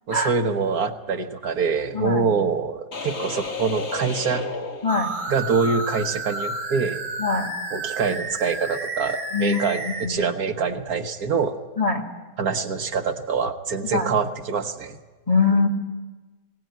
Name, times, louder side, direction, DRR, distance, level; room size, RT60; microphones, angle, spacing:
voice 1, 0.1-4.5 5.3-7.0 7.7-11.6 12.4-15.0, right 5 dB, 75° right, 7 dB, 1.6 m, -25 dB
voice 2, 1.9-2.2 4.8-5.1 7.2-7.5 9.3-9.6 9.8-10.2 11.8-12.0 13.9-14.2 15.3-15.7, left 4 dB, 25° left, 2 dB, 1.9 m, -22 dB
sound 1, 2.9-5.5, left 4 dB, 45° left, 1.8 m, -33 dB
sound 2, 4.9-10.1, right 2 dB, 45° right, 2.2 m, -31 dB
21.0 x 18.0 x 9.2 m, 1.3 s
omnidirectional pair, 1.6 m